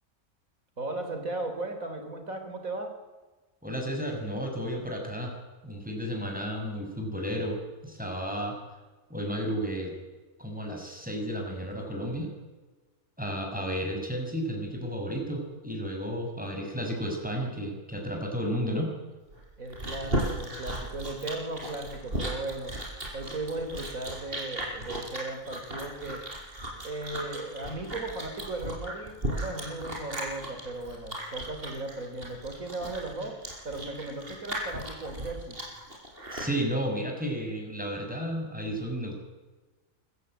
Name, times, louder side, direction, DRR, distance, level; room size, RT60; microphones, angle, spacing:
voice 1, 0.8-2.9 19.6-22.9 23.1-26.3 26.8-33.4 33.6-35.6, right 2 dB, 65° right, 6 dB, 4.0 m, -36 dB
voice 2, 3.6-5.3 5.6-8.6 9.1-9.9 10.4-12.3 13.2-18.9 36.3-39.2, equal, 5° right, 1 dB, 5.9 m, -32 dB
Chewing mastication, 19.3-36.5, right 1 dB, 40° right, 5.7 m, -36 dB
24.5 x 15.0 x 9.0 m, 1.2 s
omnidirectional pair, 1.5 m